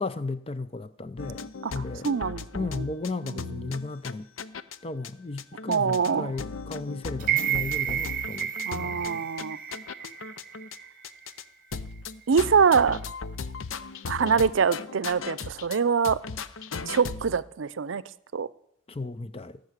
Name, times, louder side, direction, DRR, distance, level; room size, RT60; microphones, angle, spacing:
voice 1, 0.0-1.4 1.7-2.1 2.5-4.3 4.8-9.2 18.9-19.6, left 3 dB, 30° left, 0.5 m, -35 dB
sound 1, 1.2-4.8 5.0-5.1 5.4-10.8 11.0-11.4 11.7-17.4, left 5 dB, 85° left, 0.6 m, -37 dB
voice 2, 1.6-2.8 3.2-3.8 5.7-6.3 8.7-9.6 12.3-13.0 14.1-16.2 16.8-18.0 18.3-18.5, right 6 dB, 75° right, 0.5 m, -25 dB
sound 2, 7.2-11.3 11.7-11.8, right 10 dB, 40° right, 0.9 m, -31 dB
17.0 x 6.5 x 8.1 m
head